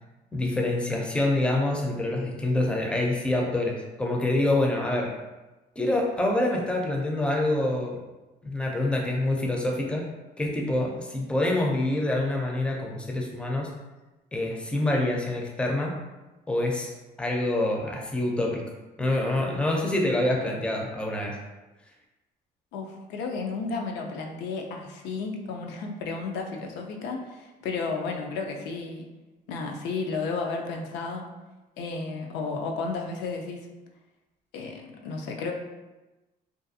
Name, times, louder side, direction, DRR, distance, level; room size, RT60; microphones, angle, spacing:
voice 1, 0.3-5.1 5.8-8.0 8.4-10.0 10.4-13.7 14.3-15.9 16.5-18.6 19.0-21.4, left 1 dB, 5° left, 0 dB, 0.4 m, -26 dB
voice 2, 22.7-29.1 29.5-31.3 31.8-33.7 34.5-35.5, left 4 dB, 90° left, 2 dB, 0.4 m, -33 dB
2.4 x 2.3 x 2.6 m, 1.1 s
cardioid pair, 110°, 17 cm